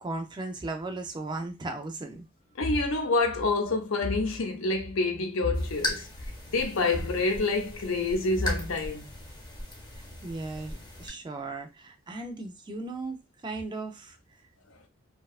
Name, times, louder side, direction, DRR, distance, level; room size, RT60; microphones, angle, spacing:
voice 1, 0.0-2.3 10.2-13.2 13.4-14.2, right 2 dB, 20° right, 0.4 m, -36 dB
voice 2, 2.6-6.1 6.5-9.1, left 3 dB, 70° left, 0.6 m, -27 dB
sound 1, 5.5-11.1, left 1 dB, 20° left, 0.8 m, -38 dB
2.6 x 2.2 x 2.4 m
head